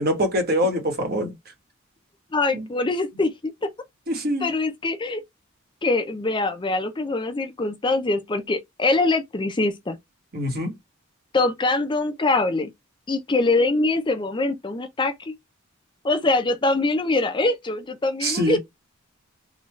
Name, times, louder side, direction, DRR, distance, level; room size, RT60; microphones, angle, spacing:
voice 1, 0.0-1.3 2.5-2.6 4.1-4.5 10.3-10.7 18.2-18.6, equal, 50° right, 1.3 m, -24 dB
voice 2, 2.3-3.7 4.4-5.2 5.8-10.0 11.3-12.7 13.1-15.3 16.0-18.6, left 2 dB, 25° left, 0.5 m, -23 dB
3.9 x 2.3 x 3.1 m
head